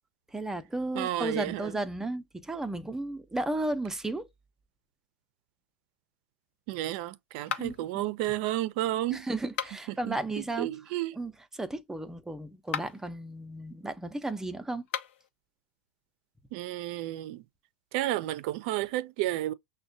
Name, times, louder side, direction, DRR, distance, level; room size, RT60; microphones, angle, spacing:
voice 1, 0.3-4.3 7.6-8.1 9.1-10.7 11.1-14.8, right 2 dB, 5° right, 0.6 m, -34 dB
voice 2, 0.9-1.7 6.7-9.3 10.1-11.2 16.5-17.4 17.9-19.5, right 15 dB, 50° right, 0.5 m, -32 dB
sound 1, 7.5-8.0 9.4-10.0 12.6-13.1 14.8-15.3, left 8 dB, 65° left, 0.8 m, -36 dB
6.1 x 2.2 x 2.6 m
hypercardioid pair, 110°, 7 cm